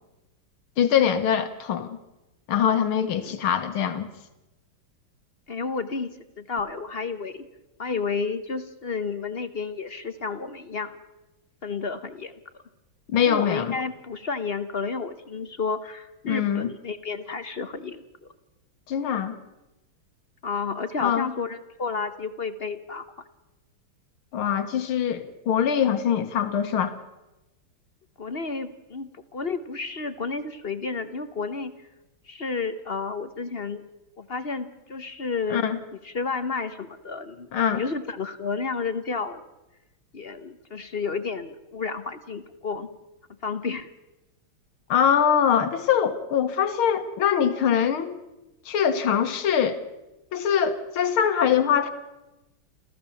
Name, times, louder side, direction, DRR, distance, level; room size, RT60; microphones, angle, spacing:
voice 1, 0.8-2.0 2.5-4.1 13.1-13.7 16.3-16.7 18.9-19.4 21.0-21.3 24.3-26.9 35.5-35.8 37.5-37.8 44.9-48.2 48.7-49.8 50.3-51.9, left 8 dB, 80° left, 10 dB, 2.1 m, -23 dB
voice 2, 5.5-6.1 6.4-7.5 7.8-11.0 11.6-12.3 13.3-18.0 20.4-23.0 28.2-31.7 32.3-33.8 34.2-35.7 36.0-39.4 40.1-42.9 43.4-43.9, left 4 dB, 40° left, 11 dB, 0.8 m, -31 dB
28.5 x 14.5 x 7.0 m, 1.0 s
omnidirectional pair, 2.3 m